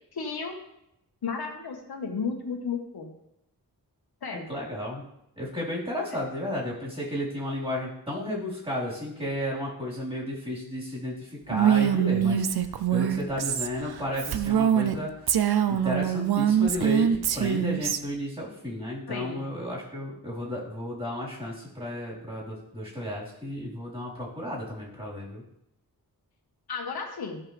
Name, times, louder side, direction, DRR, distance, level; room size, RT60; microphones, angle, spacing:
voice 1, 0.1-0.6 1.2-3.1 4.2-4.5 19.1-19.4 26.7-27.4, left 5 dB, 85° left, 2 dB, 1.4 m, -33 dB
voice 2, 4.5-5.0 5.4-12.4 12.9-25.4, left 1 dB, 15° right, -6 dB, 4.1 m, -33 dB
Female speech woman speaking, 11.5-15.0 15.3-18.0, right 9 dB, 90° right, 0.6 m, -24 dB
14.0 x 5.7 x 3.4 m, 0.81 s
wide cardioid pair, 90°, 37 cm